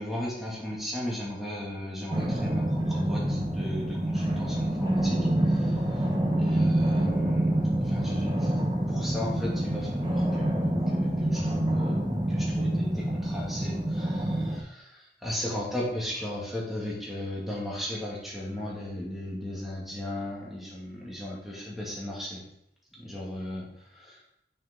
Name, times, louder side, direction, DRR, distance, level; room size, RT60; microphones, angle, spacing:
voice 1, 0.0-5.2 5.5-6.1 6.4-7.5 7.8-8.5 8.9-22.4 22.9-23.6 23.9-24.2, left 1 dB, ahead, -5 dB, 2.3 m, -36 dB
sound 1, 2.1-14.6, right 1 dB, 25° right, 1.1 m, -27 dB
7.1 x 6.5 x 3.8 m, 0.76 s
head